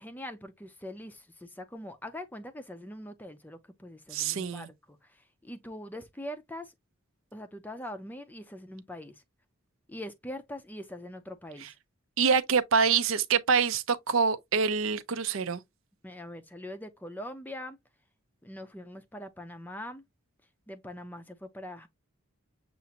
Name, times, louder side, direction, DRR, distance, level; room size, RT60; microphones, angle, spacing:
voice 1, 0.0-6.7 7.3-9.2 9.9-11.8 16.0-17.8 18.4-20.0 20.7-21.9, left 1 dB, 10° left, 0.5 m, -42 dB
voice 2, 4.1-4.7 12.2-15.6, right 6 dB, 70° right, 0.5 m, -26 dB
6.9 x 2.5 x 2.8 m
head